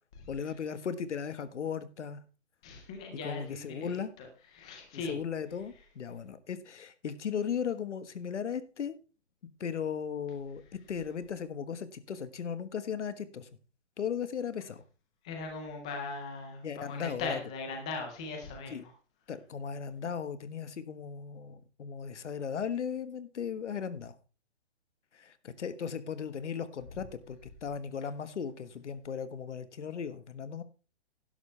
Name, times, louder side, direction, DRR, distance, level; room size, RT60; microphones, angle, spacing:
voice 1, 0.3-2.2 3.1-4.1 4.9-9.0 9.6-10.6 10.9-13.5 14.0-14.8 16.6-17.4 18.7-18.8 19.3-24.1 25.1-30.6, left 7 dB, 85° left, 13 dB, 1.5 m, -37 dB
voice 2, 2.6-4.3 4.5-5.1 15.2-18.9 26.9-27.0, left 4 dB, 5° left, 3 dB, 0.4 m, -39 dB
12.0 x 11.0 x 3.3 m, 0.35 s
hypercardioid pair, 165°, 34 cm